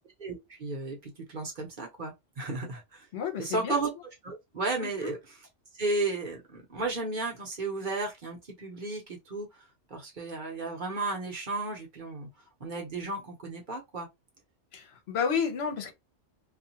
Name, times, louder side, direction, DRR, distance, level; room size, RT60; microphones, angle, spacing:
voice 1, 0.2-3.1 3.4-3.9 4.2-5.4 5.8-9.5 9.9-12.3 12.6-14.1, right 3 dB, 45° right, 0.9 m, -34 dB
voice 2, 3.1-3.8 4.8-5.1 14.7-15.9, left 6 dB, 60° left, 0.9 m, -31 dB
2.5 x 2.3 x 2.7 m
omnidirectional pair, 1.3 m